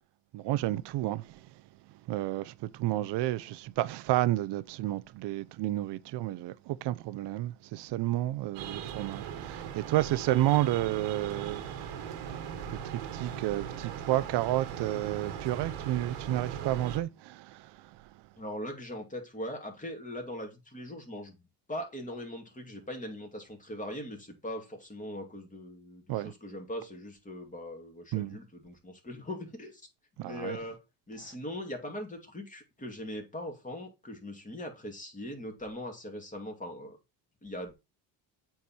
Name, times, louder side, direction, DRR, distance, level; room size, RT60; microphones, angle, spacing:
voice 1, 0.3-1.5 2.1-11.6 12.7-18.0 26.1-26.3 28.1-28.4 30.2-30.6, right 15 dB, 55° right, 0.7 m, -31 dB
sound 1, 8.5-17.0, right 8 dB, 80° right, 1.8 m, -39 dB
voice 2, 18.4-21.4 21.7-29.9 30.2-30.8 31.1-37.0 37.4-37.7, left 1 dB, 15° left, 2.5 m, -40 dB
8.3 x 4.7 x 4.3 m
cardioid pair, 115°, 49 cm